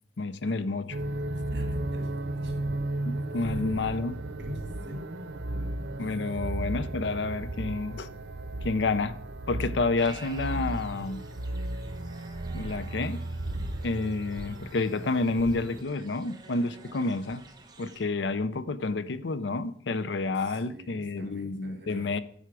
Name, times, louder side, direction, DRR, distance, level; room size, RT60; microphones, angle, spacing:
voice 1, 0.2-1.0 3.1-4.2 6.0-8.1 8.6-9.2 9.5-11.2 12.5-13.2 13.8-17.4 17.8-22.2, left 3 dB, 85° left, 0.6 m, -29 dB
sound 1, 0.9-15.8, right 1 dB, 90° right, 0.9 m, -35 dB
voice 2, 1.5-2.6 3.6-3.7 4.4-5.1 6.2-6.3 20.4-22.2, equal, 65° right, 2.1 m, -46 dB
sound 2, 10.0-18.0, right 3 dB, 25° right, 1.1 m, -51 dB
10.5 x 7.0 x 4.8 m
head